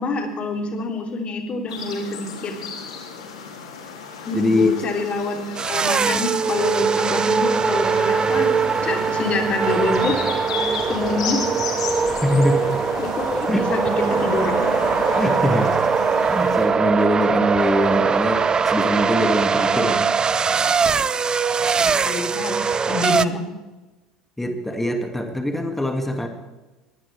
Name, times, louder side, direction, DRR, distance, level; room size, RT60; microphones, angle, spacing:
voice 1, 0.0-2.6 4.2-10.2 10.9-11.5 13.0-14.7 19.7-19.9 21.8-23.4, left 3 dB, 40° left, 3 dB, 3.5 m, -27 dB
sound 1, 1.7-16.7, left 5 dB, 80° left, 3.1 m, -33 dB
voice 2, 4.3-4.7 12.1-12.7 13.5-13.6 15.2-15.8 16.3-20.0 24.4-26.3, left 1 dB, 5° left, 4 dB, 2.5 m, -22 dB
sound 2, 5.6-23.3, right 5 dB, 25° right, 0.7 m, -21 dB
22.5 x 17.0 x 3.5 m, 1.1 s
hypercardioid pair, 70°, 3 cm